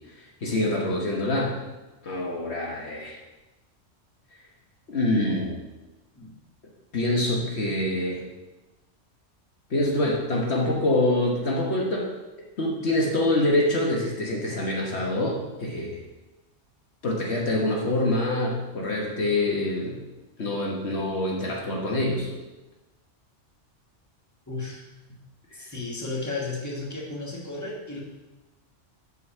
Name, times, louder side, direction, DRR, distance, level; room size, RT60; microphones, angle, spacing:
voice 1, 0.2-1.5 2.0-3.2 4.9-5.6 6.9-8.2 9.7-12.1 12.6-16.0 17.0-20.0 20.4-22.3, left 1 dB, 60° left, -2 dB, 1.4 m, -25 dB
voice 2, 24.5-24.8 25.5-28.0, left 3 dB, 15° left, -3 dB, 1.5 m, -33 dB
8.0 x 5.4 x 5.5 m, 1.1 s
omnidirectional pair, 1.3 m